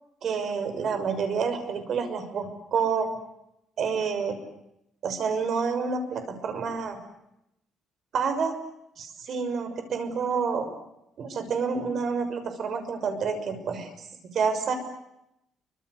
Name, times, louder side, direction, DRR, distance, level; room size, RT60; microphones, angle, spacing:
voice 1, 0.2-3.1 3.8-4.3 5.0-7.0 8.1-8.5 9.0-10.7 11.2-13.9 14.3-14.7, right 5 dB, 50° right, 8 dB, 6.2 m, -28 dB
29.5 x 25.0 x 8.1 m, 0.84 s
cardioid pair, 150°, 0 cm